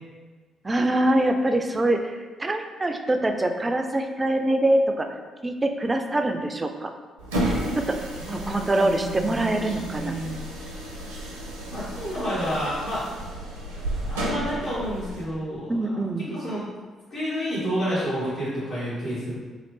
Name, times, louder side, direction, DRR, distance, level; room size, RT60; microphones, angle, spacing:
voice 1, 0.6-5.1 5.4-6.9 7.8-10.1 15.7-16.3, right 1 dB, 25° right, 5 dB, 0.3 m, -24 dB
sound 1, 7.2-15.3, right 1 dB, 75° right, 0.5 m, -32 dB
voice 2, 8.2-10.3 11.7-13.0 14.0-15.7 16.3-16.6 17.1-19.3, equal, 65° left, -14 dB, 1.2 m, -30 dB
3.0 x 2.4 x 3.2 m, 1.4 s
figure-of-eight pair, 40°, 0 cm